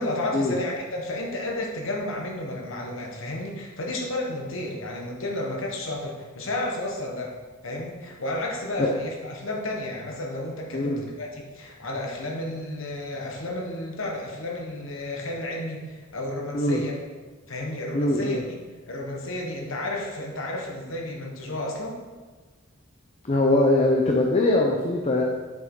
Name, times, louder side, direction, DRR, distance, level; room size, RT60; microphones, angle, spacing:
voice 1, 0.0-7.3 7.6-16.9 17.5-18.6 18.9-22.0, left 1 dB, 75° left, 0 dB, 1.3 m, -32 dB
voice 2, 17.9-18.4 23.2-25.2, left 2 dB, 30° left, 0 dB, 0.7 m, -22 dB
7.6 x 6.1 x 3.8 m, 1.3 s
head